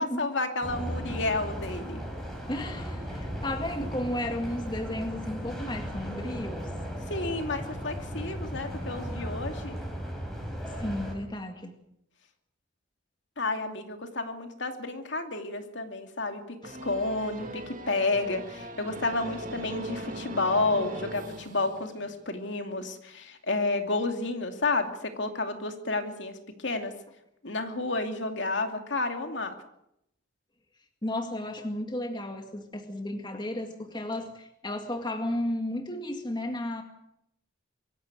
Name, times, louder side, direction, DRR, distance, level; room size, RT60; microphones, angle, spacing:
voice 1, 0.0-2.0 7.1-9.7 13.4-26.9 27.4-29.5, left 3 dB, 60° left, 5 dB, 2.6 m, -31 dB
sound 1, 0.6-11.2, equal, ahead, 5.1 m, -36 dB
voice 2, 2.5-6.7 10.8-11.7 31.0-36.8, left 1 dB, 20° left, 5 dB, 2.1 m, -33 dB
sound 2, 16.6-22.3, right 1 dB, 40° right, 3.2 m, -40 dB
24.0 x 15.0 x 9.1 m, 0.79 s
head